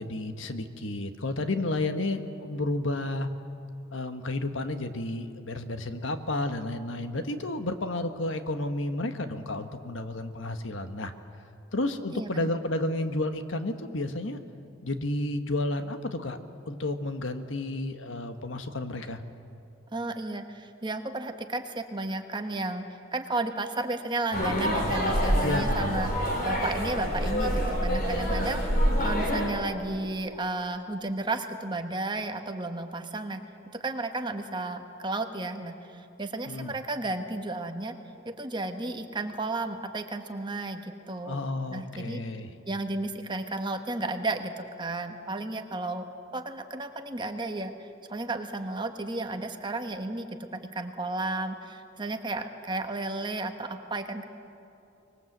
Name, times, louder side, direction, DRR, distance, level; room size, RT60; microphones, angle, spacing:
voice 1, 0.0-3.3 3.9-11.1 11.7-14.4 14.8-16.4 16.6-19.2 25.4-26.2 36.5-36.7 41.2-42.5, left 2 dB, 80° left, 8 dB, 1.4 m, -31 dB
voice 2, 12.1-12.5 19.9-22.8 23.1-26.1 26.4-28.6 29.0-33.4 33.7-37.9 38.2-42.2 42.7-46.1 46.3-54.3, right 2 dB, 25° right, 6 dB, 1.3 m, -33 dB
sound 1, 24.3-29.5, equal, 50° left, 4.5 m, -26 dB
25.0 x 20.5 x 8.0 m, 2.7 s
head